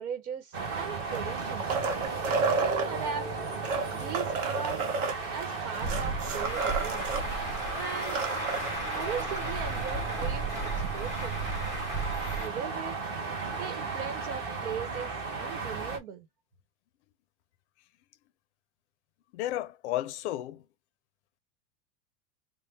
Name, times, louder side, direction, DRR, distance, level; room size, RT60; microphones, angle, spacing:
voice 1, 0.0-1.8 2.5-3.3 3.9-4.9 5.3-7.1 7.7-8.3 8.9-11.4 12.4-13.0 13.6-16.3, right 7 dB, 85° right, 1.1 m, -39 dB
sound 1, 0.5-16.0, right 4 dB, 25° right, 0.8 m, -35 dB
sound 2, 1.0-2.9 3.5-7.2 7.6-7.7 7.9-8.7 10.2-10.3, right 4 dB, 60° right, 1.1 m, -31 dB
Truck, 5.8-12.5, right 2 dB, 10° right, 0.5 m, -35 dB
voice 2, 19.3-20.6, left 14 dB, 55° left, 0.5 m, -33 dB
4.2 x 2.1 x 3.4 m
supercardioid pair, 180°, 43 cm